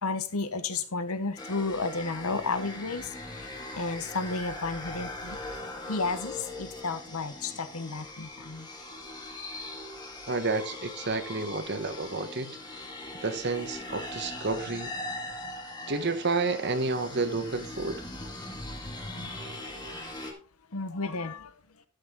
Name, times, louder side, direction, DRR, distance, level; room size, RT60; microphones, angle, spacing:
voice 1, 0.0-3.5 3.7-5.4 5.9-8.7 20.7-21.5, left 3 dB, 80° left, 1.1 m, -32 dB
sound 1, 1.4-20.3, left 2 dB, 20° left, 1.8 m, -40 dB
voice 2, 10.3-12.6 13.2-14.9 15.9-18.0, right 3 dB, 50° right, 1.1 m, -30 dB
12.5 x 6.4 x 3.7 m
head